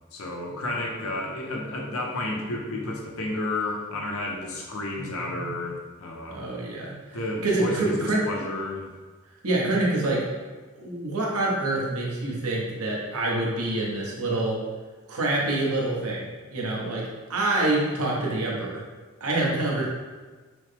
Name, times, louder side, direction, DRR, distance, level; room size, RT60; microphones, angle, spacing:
voice 1, 0.1-6.4 7.1-8.9, left 2 dB, 75° left, -1 dB, 0.8 m, -31 dB
voice 2, 5.0-5.5 6.3-6.9 7.4-8.3 9.4-10.3 10.8-14.6 15.1-16.2 16.5-18.8 19.2-19.9, right 2 dB, 85° right, -3 dB, 1.0 m, -26 dB
6.1 x 2.1 x 3.3 m, 1.4 s
head